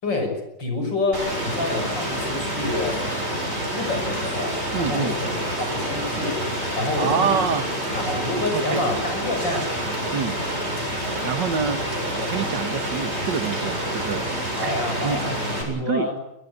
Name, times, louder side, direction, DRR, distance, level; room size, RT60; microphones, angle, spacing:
voice 1, 0.0-3.0 3.7-5.3 5.6-6.4 6.7-7.4 7.9-9.7 14.6-16.2, left 2 dB, 80° left, 5 dB, 6.8 m, -28 dB
Rain, 1.1-15.6, right 1 dB, 35° right, 7.9 m, -27 dB
voice 2, 4.7-5.2 7.0-7.7 8.5-8.8 10.1-10.4 11.3-11.9 12.2-14.3 14.6-14.8 15.0-16.1, right 6 dB, 75° right, 11 dB, 2.1 m, -27 dB
22.0 x 21.0 x 8.4 m, 0.84 s
omnidirectional pair, 1.9 m